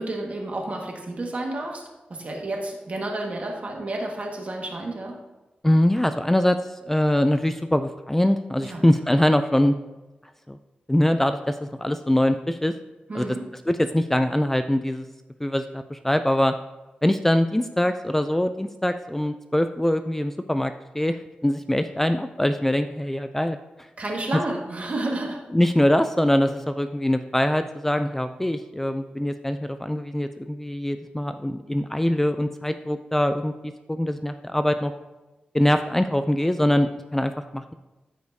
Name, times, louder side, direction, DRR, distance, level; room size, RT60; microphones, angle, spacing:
voice 1, 0.0-1.8 2.1-5.2 8.6-8.8 13.1-13.4 24.0-25.4, right 2 dB, 45° right, 0 dB, 1.7 m, -30 dB
voice 2, 5.6-9.7 10.5-10.6 10.9-12.7 13.1-13.3 13.7-15.1 15.4-16.6 17.0-23.9 25.5-34.9 35.5-37.7, left 1 dB, 10° left, 8 dB, 0.4 m, -23 dB
14.0 x 5.0 x 2.7 m, 1.1 s
wide cardioid pair, 85°, 3 cm